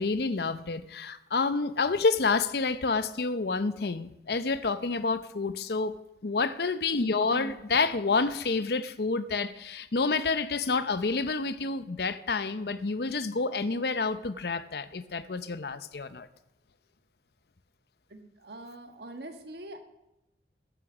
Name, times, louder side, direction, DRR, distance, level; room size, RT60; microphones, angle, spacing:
voice 1, 0.0-5.9 6.2-16.3, left 4 dB, 60° left, 0.6 m, -29 dB
voice 2, 18.1-19.8, right 1 dB, 65° right, 1.4 m, -43 dB
14.5 x 10.0 x 6.2 m
head